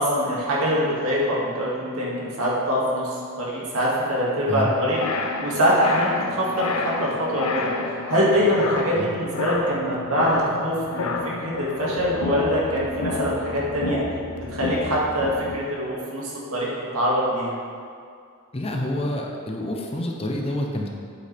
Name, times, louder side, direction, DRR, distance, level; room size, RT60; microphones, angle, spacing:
voice 1, 0.0-11.2 11.4-14.0 14.4-17.6, equal, 70° right, -5 dB, 2.0 m, -24 dB
sound 1, 4.7-15.6, left 3 dB, 80° left, 0.7 m, -30 dB
voice 2, 18.5-20.9, left 1 dB, 25° left, 1 dB, 0.7 m, -27 dB
8.3 x 8.3 x 3.4 m, 2.3 s
head